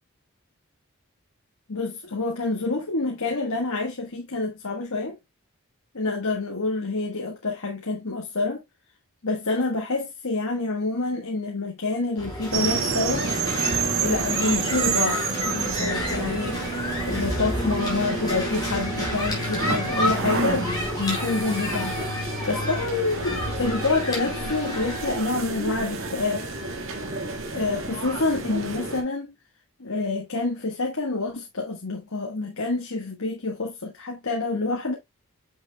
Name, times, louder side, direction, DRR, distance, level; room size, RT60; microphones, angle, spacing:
voice 1, 1.7-5.2 5.9-8.6 9.2-13.3 14.0-20.7 21.0-26.5 27.5-29.3 29.8-34.9, left 3 dB, 85° left, 1.5 m, -27 dB
sound 1, 12.2-25.2, left 1 dB, 20° left, 4.0 m, -30 dB
sound 2, 12.5-29.0, right 4 dB, 70° right, 1.7 m, -30 dB
8.2 x 6.2 x 2.3 m
head